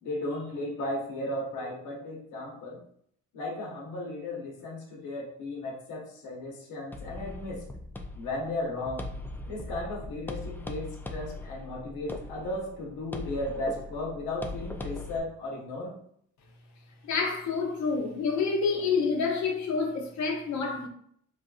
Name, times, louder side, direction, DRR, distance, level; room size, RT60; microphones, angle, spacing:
voice 1, 0.0-2.8 3.3-7.6 8.2-9.0 9.5-16.0, left 1 dB, 90° left, 1.1 m, -35 dB
sound 1, 6.9-15.2, left 2 dB, 5° left, 0.3 m, -40 dB
voice 2, 17.0-20.9, left 4 dB, 70° left, 0.9 m, -28 dB
3.9 x 2.5 x 2.4 m
cardioid pair, 90°, 30 cm